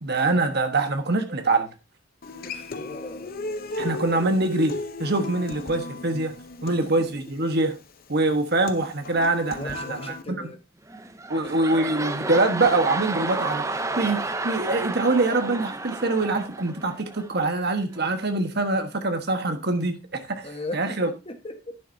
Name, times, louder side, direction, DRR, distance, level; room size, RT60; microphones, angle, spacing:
voice 1, 0.0-1.7 3.8-6.3 6.6-7.8 8.1-10.4 11.3-21.1, right 2 dB, 50° right, 1.3 m, -24 dB
Human voice / Acoustic guitar, 2.2-10.2, left 2 dB, 45° left, 0.8 m, -36 dB
voice 2, 2.4-4.2 6.7-7.2 9.4-10.6 11.4-11.5 11.9-12.4 20.4-21.8, left 2 dB, 25° left, 1.4 m, -39 dB
sound 1, 10.9-17.4 17.9-18.0, right 3 dB, 15° right, 0.6 m, -31 dB
11.0 x 9.2 x 2.7 m
head